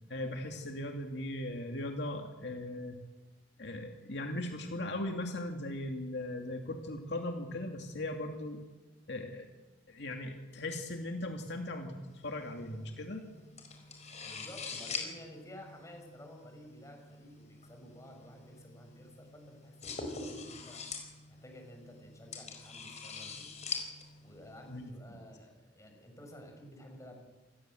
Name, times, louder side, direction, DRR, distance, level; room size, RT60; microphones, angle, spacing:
voice 1, 0.1-3.0 3.6-8.6 9.1-9.5 9.9-13.2 24.7-24.9, left 1 dB, 65° left, 4 dB, 2.5 m, -38 dB
sound 1, 12.1-24.9, left 4 dB, 40° left, 4.8 m, -45 dB
voice 2, 14.2-20.8 21.3-23.5 24.2-27.2, equal, 15° left, 3 dB, 6.1 m, -52 dB
27.0 x 20.0 x 7.8 m, 1.2 s
head